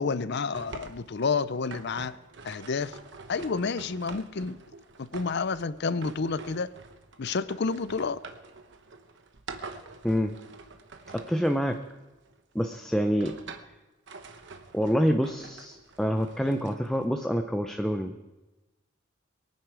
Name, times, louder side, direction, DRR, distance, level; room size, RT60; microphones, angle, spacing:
voice 1, 0.0-2.1 2.4-3.0 3.3-4.6 5.0-6.7 7.2-8.2, left 4 dB, 55° left, 15 dB, 0.5 m, -29 dB
sound 1, 0.5-12.4 12.9-13.7 14.1-17.1, right 4 dB, 60° right, 1.0 m, -46 dB
voice 2, 11.1-11.8 12.5-13.3 14.7-18.1, equal, 5° left, 5 dB, 0.6 m, -27 dB
23.0 x 9.4 x 4.8 m, 1.1 s
head